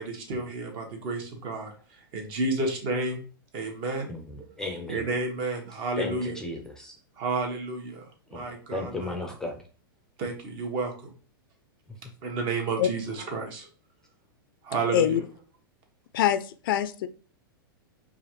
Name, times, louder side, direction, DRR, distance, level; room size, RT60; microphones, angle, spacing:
voice 1, 0.0-1.7 2.1-3.2 3.5-4.2 4.9-6.4 7.2-8.0 8.3-9.2 10.2-10.9 12.2-13.7 14.7-15.2, right 3 dB, 40° right, 1.3 m, -31 dB
voice 2, 4.1-5.1 6.0-7.0 8.3-9.6 11.9-12.0, left 2 dB, 5° left, 0.6 m, -35 dB
voice 3, 16.6-17.1, left 10 dB, 65° left, 0.4 m, -23 dB
4.9 x 2.5 x 3.0 m
hypercardioid pair, 125°, 12 cm